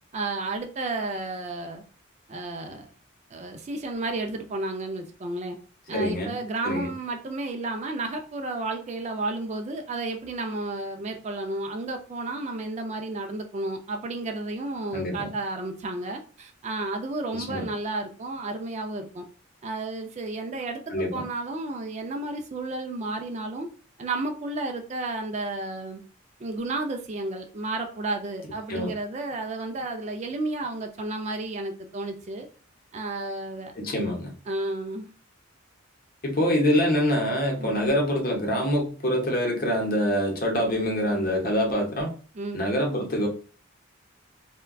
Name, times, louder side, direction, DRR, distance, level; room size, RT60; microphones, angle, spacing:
voice 1, 0.1-1.8 2.3-2.9 3.3-5.6 5.9-19.2 19.6-23.7 24.0-26.0 26.4-32.5 32.9-33.7 34.5-35.1 37.6-37.9 42.3-42.6, right 2 dB, 35° right, 4 dB, 0.3 m, -32 dB
voice 2, 5.9-6.3 6.6-6.9 14.9-15.3 17.3-17.7 20.9-21.2 28.7-28.9 33.8-34.3 36.2-42.1 42.5-43.3, equal, 45° left, 1 dB, 0.7 m, -25 dB
3.5 x 2.2 x 2.2 m, 0.38 s
head